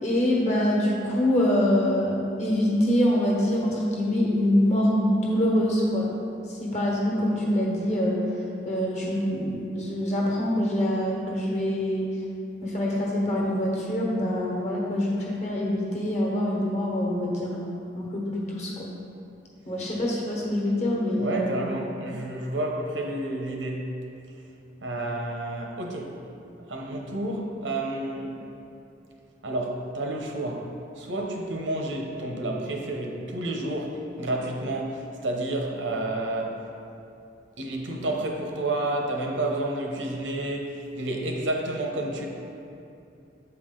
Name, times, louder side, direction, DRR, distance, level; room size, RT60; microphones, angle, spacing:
voice 1, 0.0-6.1 6.6-8.2 8.6-12.1 12.6-17.7 17.9-18.9 19.6-21.6, left 1 dB, 40° left, -3 dB, 1.2 m, -25 dB
voice 2, 21.2-23.9 24.8-26.2 26.7-28.4 29.4-36.6 37.6-42.3, right 1 dB, 90° right, 0 dB, 0.9 m, -30 dB
7.9 x 4.7 x 3.8 m, 2.7 s
head